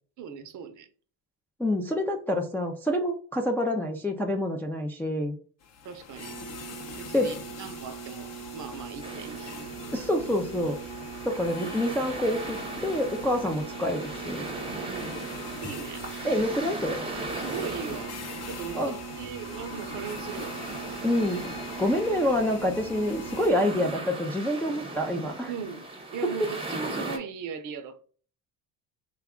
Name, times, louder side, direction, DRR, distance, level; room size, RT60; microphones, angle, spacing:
voice 1, 0.2-0.9 5.8-6.4 7.0-9.6 14.4-15.2 15.6-16.0 17.3-20.6 25.5-25.9 26.1-28.0, right 6 dB, 50° right, 0.6 m, -38 dB
voice 2, 1.6-5.4 7.1-7.3 9.9-10.8 11.2-14.5 16.2-17.0 18.8-19.0 21.0-25.5 26.2-26.5, left 1 dB, 5° left, 0.3 m, -27 dB
sound 1, 5.6-23.5, left 6 dB, 40° left, 0.6 m, -43 dB
sound 2, 6.2-24.0, right 10 dB, 80° right, 0.7 m, -42 dB
sound 3, 9.0-27.2, right 2 dB, 15° right, 0.7 m, -39 dB
3.3 x 2.3 x 3.6 m
cardioid pair, 125°, 39 cm